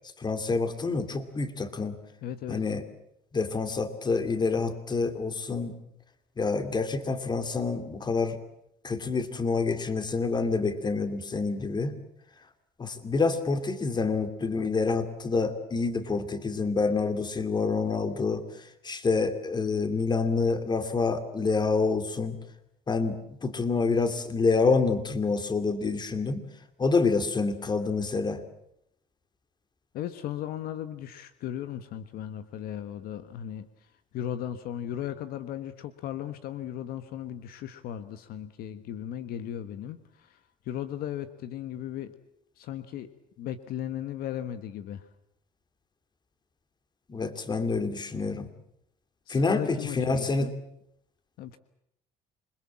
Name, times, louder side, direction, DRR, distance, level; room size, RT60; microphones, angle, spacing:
voice 1, 0.2-2.0 2.5-2.8 3.3-5.7 6.4-8.4 8.8-11.9 12.8-22.4 22.9-26.4 26.8-28.4 47.1-48.5 49.3-50.5, left 4 dB, 25° left, 10 dB, 2.7 m, -27 dB
voice 2, 2.2-2.6 29.9-33.7 34.1-40.4 40.6-42.1 42.6-43.1 43.4-45.0 49.3-50.6 51.4-51.6, left 10 dB, 70° left, 12 dB, 1.4 m, -36 dB
27.5 x 21.5 x 7.5 m, 0.77 s
cardioid pair, 100°, 16 cm